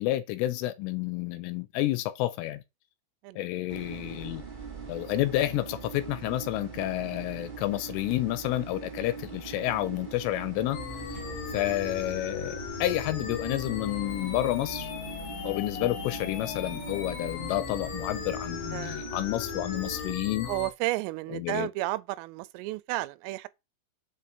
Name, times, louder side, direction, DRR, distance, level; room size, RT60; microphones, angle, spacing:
voice 1, 0.0-2.6 3.4-4.4 4.9-10.8 11.5-14.9 15.4-20.5 21.3-21.7, left 15 dB, 90° left, 3.3 m, -30 dB
sound 1, 3.7-20.1, right 6 dB, 30° right, 0.8 m, -42 dB
sound 2, 10.7-20.7, left 6 dB, 65° left, 2.3 m, -38 dB
voice 2, 18.7-19.1 20.4-23.5, right 19 dB, 85° right, 3.3 m, -32 dB
8.2 x 4.3 x 6.9 m
omnidirectional pair, 5.7 m